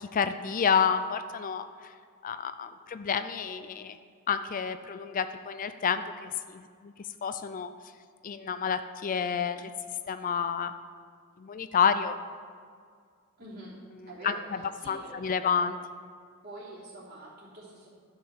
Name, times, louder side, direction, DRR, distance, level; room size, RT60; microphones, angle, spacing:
voice 1, 0.1-1.9 2.2-4.0 4.3-6.9 7.2-7.7 8.2-9.7 10.1-10.7 11.4-12.2 14.2-14.6 14.9-15.7, left 7 dB, 40° left, 11 dB, 0.4 m, -29 dB
voice 2, 13.4-13.7 14.1-15.5 16.4-17.9, right 1 dB, 50° right, -6 dB, 3.2 m, -46 dB
11.5 x 5.7 x 7.0 m, 2.1 s
head